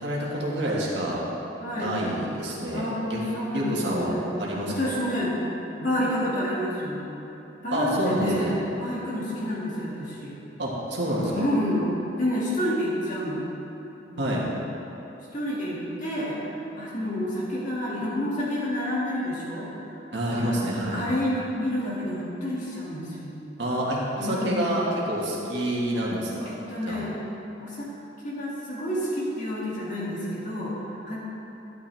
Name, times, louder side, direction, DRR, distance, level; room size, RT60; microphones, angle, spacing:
voice 1, 0.0-1.3 1.8-3.2 3.5-4.9 7.7-8.5 10.6-11.5 14.2-14.4 20.1-21.1 23.6-26.5 26.9-27.0, right 1 dB, 65° right, -4 dB, 1.9 m, -28 dB
voice 2, 1.6-1.9 2.7-4.3 4.7-5.4 5.8-7.0 7.6-10.4 11.3-11.9 12.1-13.4 14.1-14.3 15.3-16.4 16.8-19.8 20.3-20.6 20.9-23.3 24.2-24.8 26.4-27.1 27.6-27.9 28.2-31.2, left 1 dB, 40° left, -7 dB, 2.3 m, -29 dB
11.5 x 9.0 x 3.5 m, 3.0 s
head